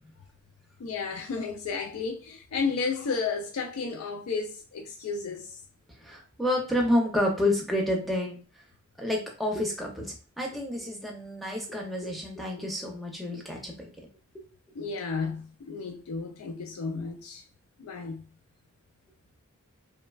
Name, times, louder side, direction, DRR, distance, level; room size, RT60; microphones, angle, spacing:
voice 1, 0.8-5.6 14.8-17.4 17.8-18.2, left 4 dB, 80° left, 0.4 m, -32 dB
voice 2, 6.0-8.4 9.0-13.9 14.3-14.4, left 1 dB, ahead, 0.6 m, -29 dB
3.1 x 2.1 x 2.3 m
head